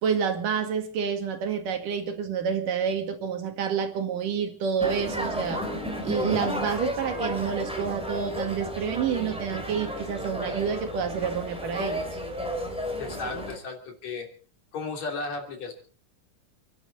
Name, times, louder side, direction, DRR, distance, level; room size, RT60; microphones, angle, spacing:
voice 1, 0.0-5.6 6.1-12.1, right 7 dB, 85° right, 6 dB, 3.7 m, -28 dB
sound 1, 4.8-13.6, equal, ahead, 2.7 m, -32 dB
voice 2, 13.0-14.3 14.7-15.7, left 3 dB, 60° left, 2 dB, 4.3 m, -34 dB
28.5 x 12.0 x 4.1 m, 0.40 s
omnidirectional pair, 3.6 m